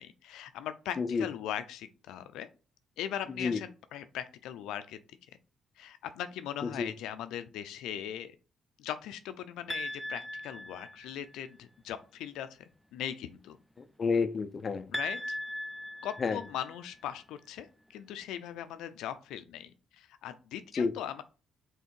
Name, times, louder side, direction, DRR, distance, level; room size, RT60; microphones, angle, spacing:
voice 1, 0.0-2.5 3.0-5.0 5.8-8.4 8.8-13.6 14.9-15.4 16.0-21.2, left 10 dB, 90° left, 11 dB, 0.5 m, -40 dB
sound 1, 9.7-11.3 14.9-17.0, left 1 dB, 5° left, 0.3 m, -39 dB
voice 2, 14.0-14.9 16.2-16.4 20.8-20.9, left 5 dB, 40° left, 11 dB, 0.6 m, -29 dB
5.6 x 3.6 x 4.6 m, 0.34 s
cardioid pair, 90°, 0 cm